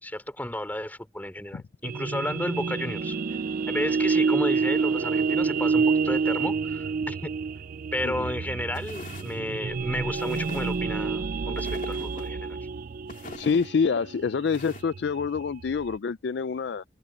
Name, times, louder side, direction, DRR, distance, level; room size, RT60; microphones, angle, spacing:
voice 1, 0.0-3.2 3.7-7.3 7.9-12.6, left 1 dB, 10° left, 3.6 m, -33 dB
sound 1, 1.8-16.0, right 5 dB, 50° right, 0.4 m, -28 dB
sound 2, 8.7-9.4 10.1-10.8 11.6-12.3 13.1-13.7 14.5-14.8, left 3 dB, 45° left, 2.9 m, -43 dB
voice 2, 13.4-16.8, left 5 dB, 65° left, 0.4 m, -27 dB
head